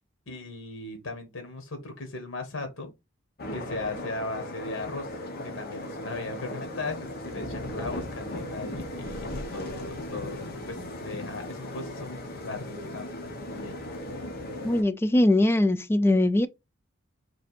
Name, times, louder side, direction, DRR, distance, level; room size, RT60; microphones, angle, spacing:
voice 1, 0.3-2.9 3.5-5.1 5.4-13.1 13.5-13.8, left 3 dB, 80° left, 1.1 m, -37 dB
sound 1, 3.4-14.8, left 1 dB, 50° left, 0.9 m, -37 dB
voice 2, 14.6-16.5, left 1 dB, 10° left, 0.3 m, -21 dB
3.3 x 2.5 x 4.1 m
head